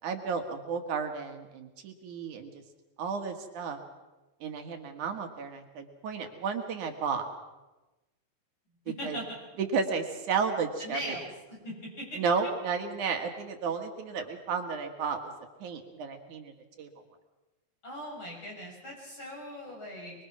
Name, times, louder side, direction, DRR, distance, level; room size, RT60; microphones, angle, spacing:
voice 1, 0.0-2.6 3.0-3.8 4.4-7.2 9.0-9.2 9.6-11.2 12.2-15.2 15.6-16.5 16.8-16.9, right 5 dB, 75° right, 5 dB, 3.2 m, -32 dB
voice 2, 10.8-12.2 17.8-20.1, equal, 40° left, -2 dB, 8.0 m, -40 dB
24.5 x 22.0 x 6.1 m, 1.1 s
omnidirectional pair, 3.5 m